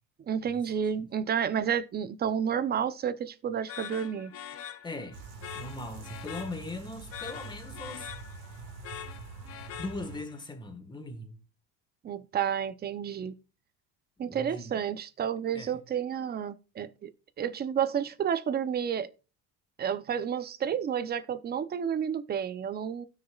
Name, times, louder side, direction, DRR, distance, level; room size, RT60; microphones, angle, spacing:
voice 1, 0.3-4.3 12.0-13.3 14.2-17.1 17.4-19.1 19.8-23.0, right 8 dB, 30° right, 0.6 m, -30 dB
sound 1, 3.7-10.4, left 10 dB, 45° left, 0.8 m, -44 dB
voice 2, 4.8-5.2 5.5-8.1 9.8-11.4 14.3-14.8 15.5-15.8, left 2 dB, 15° left, 1.5 m, -40 dB
sound 2, 5.1-10.2, right 4 dB, 85° right, 2.1 m, -45 dB
16.5 x 6.5 x 2.4 m
cardioid pair, 130°, 34 cm